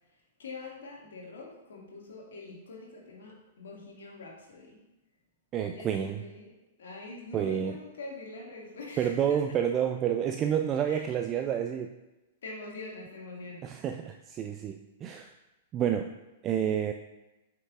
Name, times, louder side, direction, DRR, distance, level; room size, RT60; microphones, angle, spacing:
voice 1, 0.4-4.8 5.7-6.5 6.8-9.6 10.9-11.2 12.4-13.7, left 3 dB, 60° left, -3 dB, 2.0 m, -44 dB
voice 2, 5.5-6.2 7.3-7.8 9.0-11.9 13.6-15.3 15.7-16.1 16.4-16.9, right 9 dB, 30° right, 6 dB, 0.3 m, -29 dB
8.4 x 5.7 x 2.5 m, 1.0 s
figure-of-eight pair, 105°, 0 cm